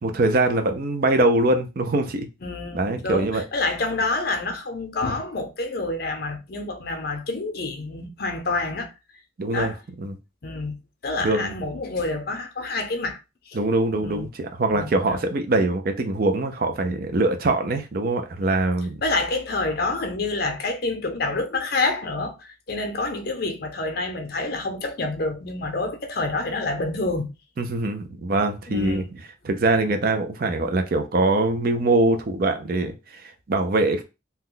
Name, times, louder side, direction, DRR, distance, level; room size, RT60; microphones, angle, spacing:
voice 1, 0.0-2.3 2.7-3.4 9.4-10.2 11.2-11.5 13.5-19.0 27.6-29.0 29.4-34.0, right 2 dB, 50° right, 0.4 m, -23 dB
voice 2, 2.4-8.9 9.5-9.8 10.4-10.8 11.0-13.2 13.5-13.6 14.0-14.3 14.6-15.2 19.0-27.3 28.7-29.1, left 2 dB, 50° left, 0.6 m, -28 dB
2.8 x 2.1 x 3.7 m
head